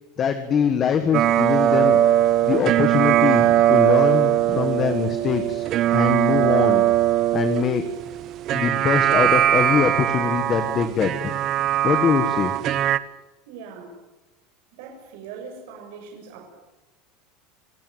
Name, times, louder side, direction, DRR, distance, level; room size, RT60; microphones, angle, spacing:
voice 1, 0.2-2.0 2.4-6.9 7.3-7.8 8.5-11.3 11.8-12.5, left 7 dB, 25° left, 8 dB, 1.5 m, -23 dB
sound 1, 1.1-13.0, right 12 dB, 35° right, 0.9 m, -20 dB
voice 2, 13.5-14.0 14.7-16.5, right 5 dB, 70° right, 2 dB, 6.6 m, -40 dB
28.0 x 16.0 x 9.4 m, 1.1 s
supercardioid pair, 160°, 0 cm